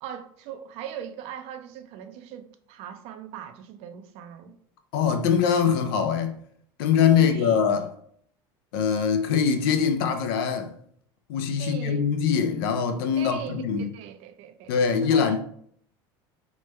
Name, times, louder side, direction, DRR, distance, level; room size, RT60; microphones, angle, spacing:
voice 1, 0.0-4.5 7.2-7.7 11.6-12.1 13.2-15.4, right 9 dB, 60° right, 0.4 m, -39 dB
voice 2, 4.9-6.4 6.8-7.9 8.7-10.7 11.3-13.9 14.7-15.4, left 7 dB, 80° left, 0.4 m, -23 dB
3.1 x 2.2 x 3.1 m
supercardioid pair, 110°, 12 cm